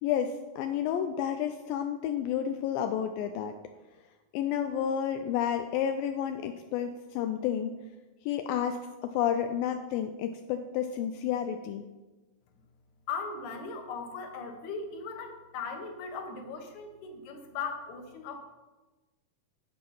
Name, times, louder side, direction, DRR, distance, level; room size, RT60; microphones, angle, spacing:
voice 1, 0.0-3.5 4.3-7.7 8.3-11.8, left 9 dB, 85° left, 6 dB, 2.3 m, -31 dB
voice 2, 13.1-18.4, left 5 dB, 60° left, 4 dB, 2.5 m, -38 dB
11.5 x 7.6 x 5.4 m, 1.2 s
omnidirectional pair, 4.1 m